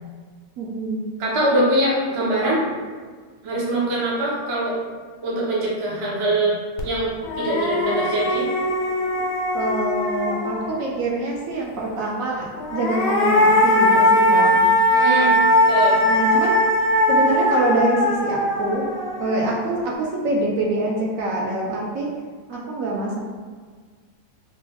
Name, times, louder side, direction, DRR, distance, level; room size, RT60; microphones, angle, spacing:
voice 1, 0.6-1.0 9.5-14.6 16.0-16.5 17.1-18.9 19.2-22.1 22.5-23.2, right 2 dB, 70° right, -3 dB, 0.9 m, -25 dB
voice 2, 1.2-2.6 3.4-4.8 5.2-8.5 14.9-15.4 15.7-16.0, right 1 dB, 45° right, -6 dB, 0.4 m, -23 dB
sound 1, 6.8-6.9 7.2-10.9 12.5-19.8, left 1 dB, 75° left, 1.0 m, -20 dB
3.1 x 2.2 x 3.3 m, 1.5 s
omnidirectional pair, 1.7 m